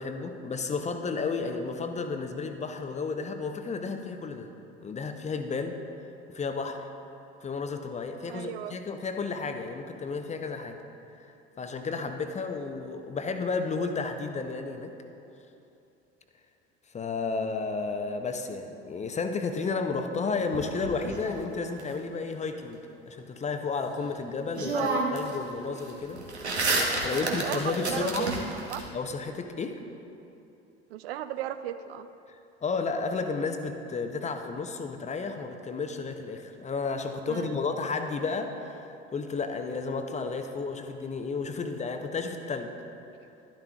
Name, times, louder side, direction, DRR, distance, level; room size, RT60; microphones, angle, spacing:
voice 1, 0.0-4.5 4.8-5.8 6.3-6.8 7.4-10.8 11.6-14.9 16.9-22.8 23.1-28.3 28.9-29.8 32.3-42.7, left 4 dB, 20° left, 6 dB, 0.7 m, -32 dB
voice 2, 8.3-8.8 24.7-25.1 27.3-28.8 30.9-32.1 37.3-37.6, right 11 dB, 65° right, 11 dB, 0.5 m, -36 dB
sound 1, 20.5-21.8 24.0-24.1 24.5-25.3 25.6-28.8, right 2 dB, 85° right, 1.0 m, -30 dB
11.5 x 11.5 x 2.4 m, 2.8 s
figure-of-eight pair, 65°, 32 cm